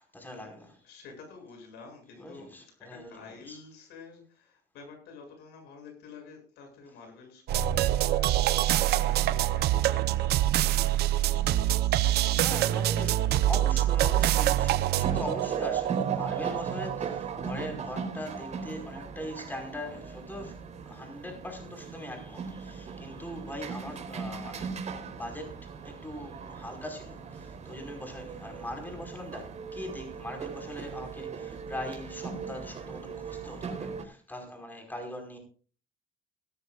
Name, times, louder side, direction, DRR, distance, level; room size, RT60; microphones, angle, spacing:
voice 1, 0.0-0.8 2.2-3.6 12.4-20.6 20.8-35.4, left 1 dB, 10° left, 3 dB, 5.1 m, -41 dB
voice 2, 0.8-11.6, left 5 dB, 85° left, 4 dB, 7.6 m, -50 dB
sound 1, 7.5-17.6, right 13 dB, 75° right, 0.8 m, -25 dB
sound 2, 15.0-34.0, right 5 dB, 45° right, 3.8 m, -39 dB
18.0 x 13.5 x 2.5 m, 0.40 s
cardioid pair, 110°, 17 cm